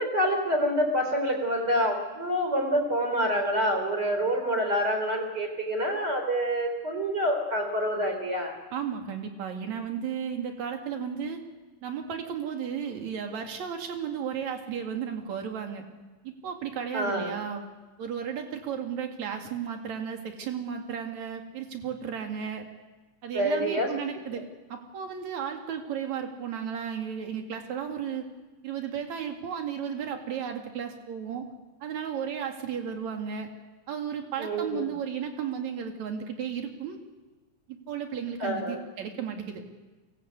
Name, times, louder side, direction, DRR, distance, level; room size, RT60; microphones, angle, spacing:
voice 1, 0.0-8.5 16.9-17.3 23.3-23.9 24.3-24.4 34.4-34.8 38.4-38.8, equal, 25° right, 3 dB, 4.5 m, -27 dB
voice 2, 8.7-11.4 11.8-15.8 16.2-17.7 18.0-22.7 23.2-24.4 24.7-28.2 28.6-31.5 31.8-33.5 33.9-37.0 37.7-39.6, right 7 dB, 50° right, 3 dB, 3.3 m, -34 dB
24.0 x 19.0 x 8.3 m, 1.2 s
omnidirectional pair, 4.3 m